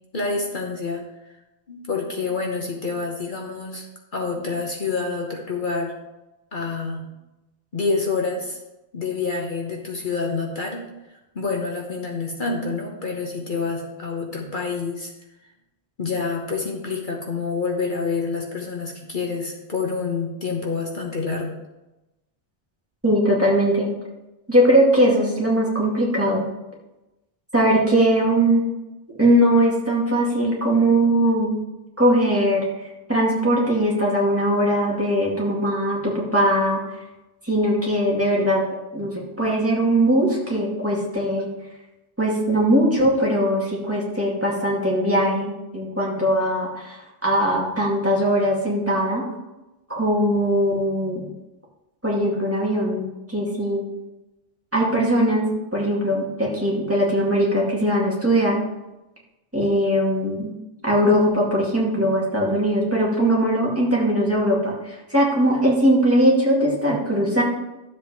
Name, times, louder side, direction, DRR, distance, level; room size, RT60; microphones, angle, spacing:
voice 1, 0.1-1.0 1.7-3.9 4.1-5.9 6.5-7.0 7.7-8.6 8.9-10.9 11.3-15.1 16.0-21.5, left 4 dB, 55° left, 0 dB, 1.3 m, -27 dB
voice 2, 23.0-23.9 24.5-26.5 27.5-28.7 29.2-31.6 32.0-32.7 33.1-36.8 37.4-38.6 38.9-41.5 42.2-49.2 49.9-51.2 52.0-53.9 54.7-58.6 59.5-60.5 60.8-67.4, equal, 15° right, -5 dB, 2.3 m, -20 dB
12.0 x 7.5 x 3.2 m, 0.98 s
omnidirectional pair, 1.0 m